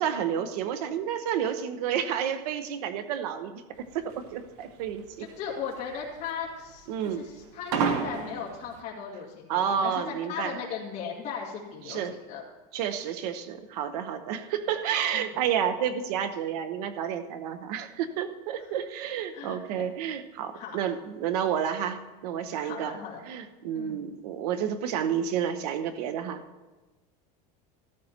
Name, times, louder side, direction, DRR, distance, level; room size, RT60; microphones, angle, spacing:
voice 1, 0.0-3.6 3.9-5.3 6.9-7.3 9.5-10.6 11.9-12.2 12.7-23.0 23.2-26.4, right 8 dB, 85° right, 10 dB, 1.0 m, -30 dB
sound 1, 3.8-8.8, right 5 dB, 65° right, 1.3 m, -31 dB
voice 2, 5.4-12.4 15.1-15.3 18.6-18.8 19.3-19.9 20.5-20.8 22.5-23.2 23.7-24.0, left 6 dB, 35° left, -4 dB, 2.1 m, -37 dB
13.5 x 13.5 x 3.0 m, 1.2 s
cardioid pair, 170°, 20 cm